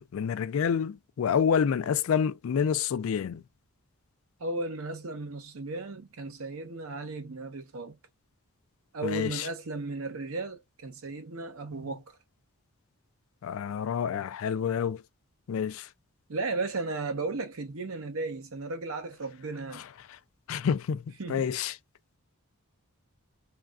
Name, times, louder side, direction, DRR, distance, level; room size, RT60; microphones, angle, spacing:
voice 1, 0.0-3.4 9.0-9.5 13.4-15.0 15.5-15.9 19.7-19.8 20.5-21.0 21.3-21.7, left 7 dB, 65° left, 0.3 m, -28 dB
voice 2, 4.4-8.0 8.9-12.0 16.3-19.8 21.2-21.5, right 3 dB, 70° right, 0.9 m, -35 dB
3.2 x 2.4 x 2.3 m
head